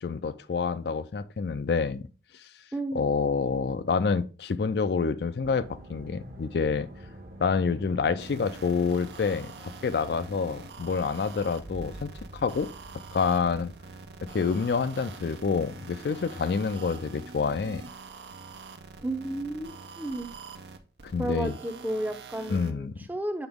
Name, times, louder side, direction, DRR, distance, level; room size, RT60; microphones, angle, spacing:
voice 1, 0.0-2.0 2.9-6.9 7.4-12.1 12.4-12.7 13.1-13.7 14.3-17.8 21.0-21.5 22.5-22.9, left 5 dB, 65° left, 0.4 m, -27 dB
voice 2, 2.7-3.1 19.0-20.3 21.2-23.5, right 1 dB, 10° right, 0.6 m, -32 dB
sound 1, 5.4-17.8, right 1 dB, 50° right, 1.0 m, -49 dB
sound 2, 8.2-22.7, right 4 dB, 75° right, 0.6 m, -45 dB
8.0 x 3.9 x 3.5 m
head